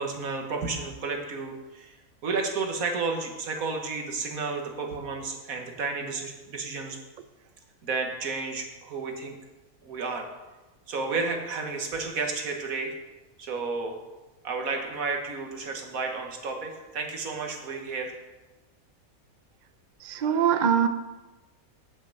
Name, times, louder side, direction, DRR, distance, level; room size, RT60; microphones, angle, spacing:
voice 1, 0.0-1.9 2.2-7.0 7.8-9.3 9.8-10.3 10.9-13.0 13.4-14.0 14.4-18.1, right 4 dB, 70° right, 3 dB, 1.8 m, -32 dB
voice 2, 20.0-20.9, right 8 dB, 55° right, 9 dB, 0.5 m, -23 dB
8.0 x 6.5 x 7.6 m, 1.1 s
omnidirectional pair, 1.5 m